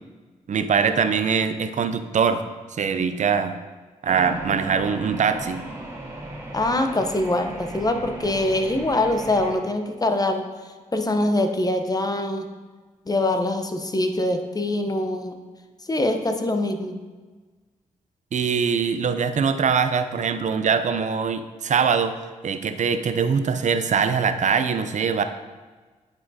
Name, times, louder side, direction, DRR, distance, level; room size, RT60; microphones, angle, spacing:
voice 1, 0.5-2.4 2.7-3.6 4.0-5.6 18.3-22.1 22.4-25.2, right 6 dB, 55° right, 10 dB, 0.5 m, -22 dB
sound 1, 4.0-9.6, right 1 dB, 15° right, 1.6 m, -36 dB
voice 2, 6.5-10.5 10.9-12.5 13.1-15.4 15.9-16.9, left 1 dB, 25° left, 6 dB, 0.8 m, -23 dB
9.4 x 4.5 x 2.8 m, 1.3 s
supercardioid pair, 40°, 15 cm